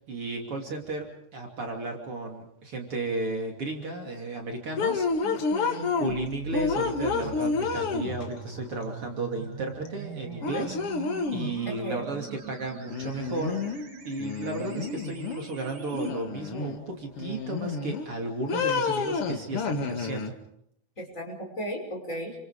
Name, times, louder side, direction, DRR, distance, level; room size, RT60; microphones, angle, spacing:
voice 1, 0.1-1.1 1.3-5.4 6.0-13.6 14.0-20.3, right 3 dB, 50° right, 2 dB, 3.6 m, -34 dB
sound 1, 4.8-6.2 6.5-8.4 9.9-10.0 10.4-11.5 12.9-13.9 14.2-15.4 15.9-16.8 17.2-18.1 18.5-20.3, left 4 dB, 55° left, 2.5 m, -29 dB
voice 2, 5.2-5.9 11.7-12.0 21.0-22.4, equal, 25° left, 1 dB, 6.2 m, -36 dB
sound 2, 6.1-16.1, right 3 dB, 85° right, 4.6 m, -42 dB
29.0 x 26.0 x 5.0 m, 0.72 s
omnidirectional pair, 3.4 m